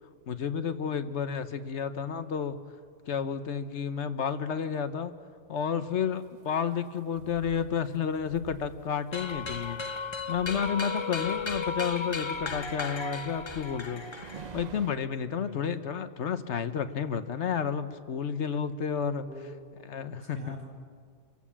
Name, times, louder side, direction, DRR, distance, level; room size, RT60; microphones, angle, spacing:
voice 1, 0.3-2.6 3.1-5.1 5.5-9.8 10.3-14.0 14.5-19.2 19.9-20.4, left 7 dB, 70° left, 11 dB, 1.2 m, -31 dB
sound 1, 6.2-7.2 7.9-8.0 8.4-8.5 9.9-10.0 10.7-10.8 12.0-12.1 13.0-13.1 13.8-14.9, right 6 dB, 45° right, 0.6 m, -45 dB
sound 2, 7.1-7.6 8.0-8.6 9.0-9.6 10.0-10.6 11.0-11.6 12.0-12.6 13.1-13.7 14.1-14.7, right 4 dB, 90° right, 7.4 m, -52 dB
sound 3, 9.1-14.7, left 4 dB, 30° left, 0.7 m, -35 dB
voice 2, 15.4-15.8 19.1-19.6 20.1-20.7, left 1 dB, 60° right, -2 dB, 4.2 m, -45 dB
27.0 x 15.5 x 7.4 m, 2.1 s
omnidirectional pair, 1.3 m